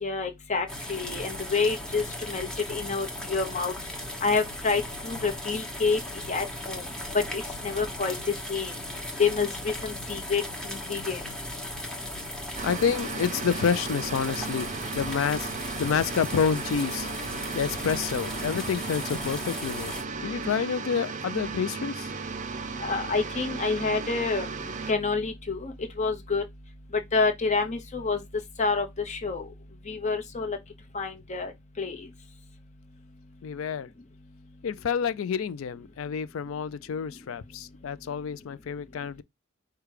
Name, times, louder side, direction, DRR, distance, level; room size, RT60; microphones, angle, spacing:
voice 1, 0.0-3.7 4.2-6.0 6.3-6.8 7.1-8.1 8.5-8.8 9.2-11.2 22.8-26.4 26.9-28.2 28.6-29.5 29.9-30.6 30.9-31.5 31.8-32.1, left 4 dB, 35° left, 0.9 m, -28 dB
sound 1, 0.7-20.0, left 1 dB, 5° left, 1.1 m, -37 dB
voice 2, 12.6-14.7 14.9-15.5 15.8-17.1 17.5-19.9 20.2-22.1 33.4-33.9 34.6-39.2, left 6 dB, 75° left, 0.4 m, -28 dB
sound 2, 12.6-24.9, right 4 dB, 35° right, 0.5 m, -35 dB
4.9 x 2.3 x 4.8 m
head